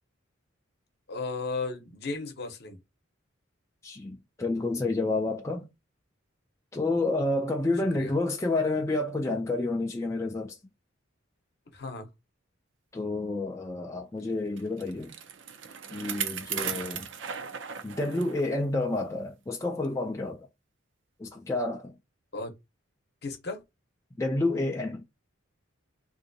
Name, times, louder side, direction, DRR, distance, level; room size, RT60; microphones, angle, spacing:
voice 1, 1.1-2.8 7.8-8.2 11.7-12.1 16.5-16.7 22.3-22.5 23.2-23.6, left 3 dB, 50° left, 0.8 m, -35 dB
voice 2, 3.8-5.6 6.7-10.6 12.9-15.1 15.9-17.1 17.8-20.5 21.2-21.9 24.2-25.0, left 2 dB, 15° left, 0.3 m, -29 dB
Bicycle, 14.6-18.5 18.9-19.0 19.8-19.9, right 8 dB, 60° right, 0.5 m, -36 dB
3.5 x 2.6 x 2.6 m
head